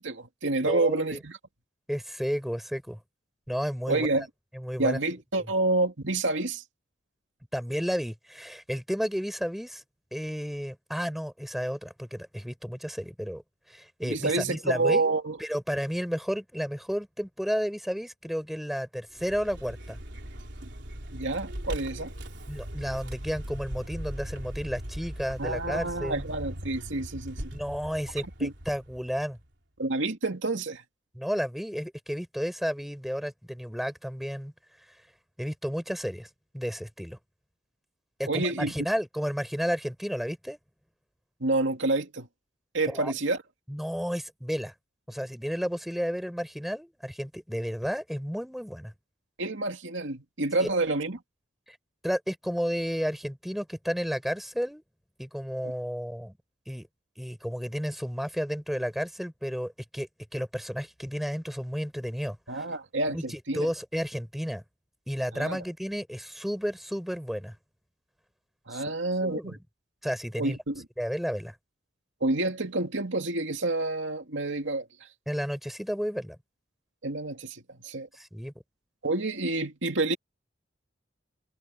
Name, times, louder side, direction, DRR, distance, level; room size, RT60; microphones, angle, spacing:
voice 1, 0.0-1.4 3.9-4.3 4.8-6.6 14.0-15.4 21.1-22.1 25.4-27.5 28.4-28.5 29.8-30.8 38.3-38.8 41.4-42.3 42.7-43.4 49.4-51.2 55.6-55.7 62.5-63.7 65.3-65.6 68.7-69.6 70.4-70.8 72.2-75.1 77.0-78.1 79.0-80.2, right 2 dB, 85° right, 2.4 m, -28 dB
voice 2, 0.6-1.2 1.9-3.0 3.5-4.1 4.5-5.0 7.5-9.8 10.1-13.4 13.7-15.1 15.4-20.0 22.5-26.2 27.5-29.4 31.2-34.5 35.4-36.3 36.5-37.2 38.2-40.6 42.9-43.1 43.7-44.7 45.1-48.9 50.6-50.7 51.7-51.8 52.0-54.8 55.2-56.3 56.7-56.9 57.2-62.6 63.1-64.6 65.1-67.5 68.7-69.6 70.0-70.6 71.0-71.5 75.3-76.4 78.1-78.5, equal, ahead, 5.3 m, -32 dB
Vehicle, 19.1-29.5, equal, 70° right, 3.9 m, -39 dB
head